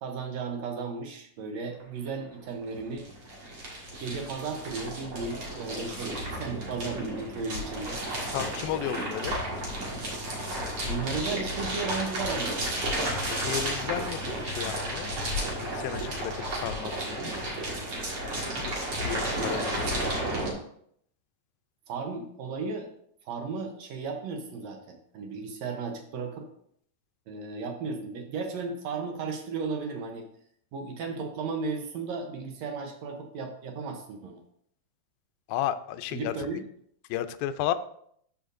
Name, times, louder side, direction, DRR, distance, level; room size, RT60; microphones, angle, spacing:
voice 1, 0.0-3.0 4.0-8.0 9.0-9.1 10.9-13.0 19.2-19.7 21.9-22.9 23.2-26.5 27.3-30.2 30.7-34.4 36.1-36.7, right 4 dB, 75° right, 3 dB, 1.6 m, -35 dB
sound 1, 1.8-1.9 2.1-20.5, right 1 dB, 45° right, 2.2 m, -33 dB
voice 2, 8.3-9.4 13.3-15.1 15.6-17.4 18.6-18.7 19.0-20.0 35.5-36.4 37.1-37.7, left 11 dB, 90° left, 11 dB, 2.4 m, -33 dB
13.0 x 5.4 x 2.6 m, 0.68 s
omnidirectional pair, 4.1 m